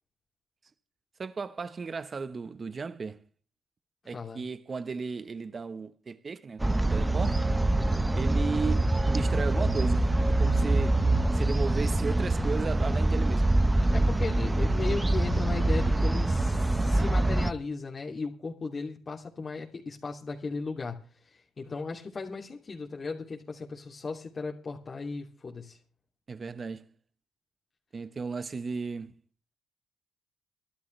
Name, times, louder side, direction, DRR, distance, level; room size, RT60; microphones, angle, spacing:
voice 1, 1.2-3.2 4.0-7.5 8.1-11.0 11.3-13.5 26.3-26.9 27.9-29.2, right 4 dB, 35° right, 1.3 m, -35 dB
sound 1, 6.6-17.5, right 2 dB, 15° right, 1.1 m, -25 dB
voice 2, 13.9-25.8, left 4 dB, 35° left, 3.1 m, -36 dB
25.0 x 12.5 x 3.4 m
cardioid pair, 90°, 0 cm